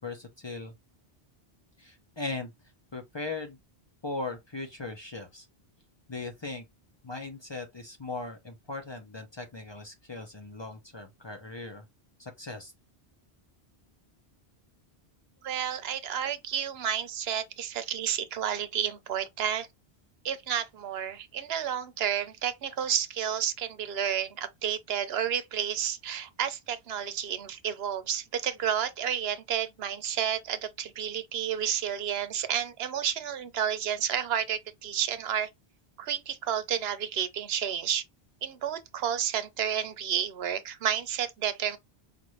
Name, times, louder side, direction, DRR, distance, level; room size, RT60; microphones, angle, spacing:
voice 1, 0.0-0.7 1.8-2.5 2.9-3.6 4.0-5.5 6.1-6.6 7.0-11.8 12.2-12.7, left 3 dB, 30° left, 0.6 m, -38 dB
voice 2, 15.4-19.7 20.2-35.5 36.0-38.0 38.4-41.8, right 9 dB, 75° right, 0.9 m, -31 dB
5.2 x 2.5 x 3.1 m
omnidirectional pair, 1.1 m